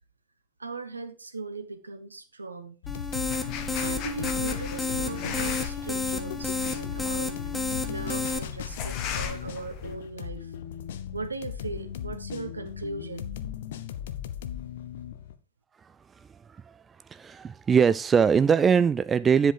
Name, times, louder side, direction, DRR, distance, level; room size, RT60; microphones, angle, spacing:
voice 1, 0.6-2.8 3.7-7.3 7.9-10.5 11.1-13.3, right 3 dB, 80° right, 1.1 m, -38 dB
sound 1, 2.8-15.4, left 10 dB, 55° left, 0.8 m, -37 dB
sound 2, 2.9-8.4, left 3 dB, 5° left, 1.1 m, -31 dB
sound 3, 3.3-10.0, left 7 dB, 40° left, 1.4 m, -38 dB
voice 2, 17.1-19.5, right 6 dB, 20° right, 0.3 m, -21 dB
9.9 x 5.3 x 4.7 m
figure-of-eight pair, 90°, 0 cm